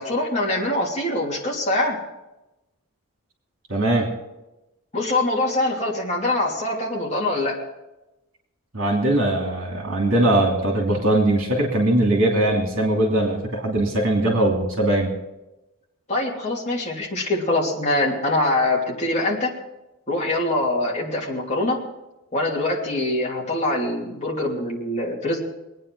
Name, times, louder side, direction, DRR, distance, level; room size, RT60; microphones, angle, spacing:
voice 1, 0.0-2.0 4.9-7.6 16.1-19.5 20.1-21.8 22.3-25.4, left 2 dB, 30° left, -3 dB, 3.1 m, -24 dB
voice 2, 3.7-4.1 8.7-15.2, right 1 dB, 70° right, 0 dB, 2.8 m, -20 dB
23.0 x 9.3 x 4.8 m, 0.97 s
head